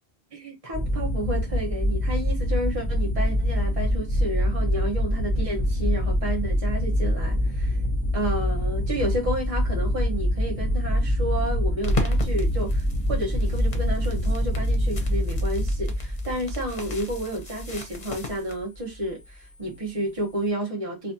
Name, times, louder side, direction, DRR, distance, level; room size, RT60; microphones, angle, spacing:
voice 1, 0.3-7.8 8.1-21.1, right 1 dB, 30° right, 1.2 m, -31 dB
sound 1, 0.7-20.5, equal, 5° left, 2.7 m, -26 dB
sound 2, 11.8-18.6, left 3 dB, 40° left, 0.9 m, -37 dB
4.0 x 2.7 x 2.7 m
omnidirectional pair, 1.1 m